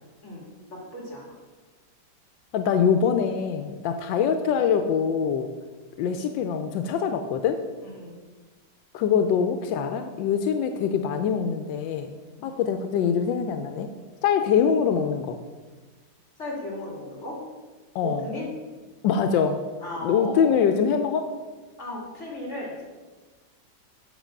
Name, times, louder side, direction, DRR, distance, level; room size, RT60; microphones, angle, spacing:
voice 1, 0.7-1.4 7.8-8.2 12.4-12.6 16.4-17.4 18.0-18.5 19.8-20.6 21.8-22.8, left 1 dB, 40° left, -3 dB, 2.9 m, -36 dB
voice 2, 2.5-5.5 6.0-7.6 8.9-12.1 12.4-13.9 14.2-15.4 17.9-18.3 19.0-19.6 20.0-21.3, left 7 dB, 85° left, 7 dB, 1.3 m, -24 dB
8.2 x 6.0 x 6.4 m, 1.3 s
omnidirectional pair, 2.0 m